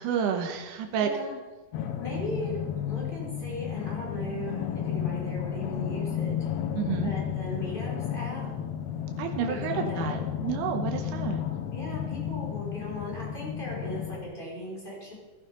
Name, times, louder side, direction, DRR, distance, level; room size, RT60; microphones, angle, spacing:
voice 1, 0.0-1.1 6.8-7.1 9.2-11.4, right 7 dB, 80° right, 4 dB, 2.7 m, -30 dB
voice 2, 1.0-1.4 2.0-6.3 6.9-8.5 9.4-10.2 11.7-15.1, left 1 dB, 15° left, -4 dB, 5.4 m, -38 dB
sound 1, 1.7-14.2, left 9 dB, 65° left, 2.4 m, -32 dB
16.5 x 11.5 x 5.3 m, 1.2 s
omnidirectional pair, 3.7 m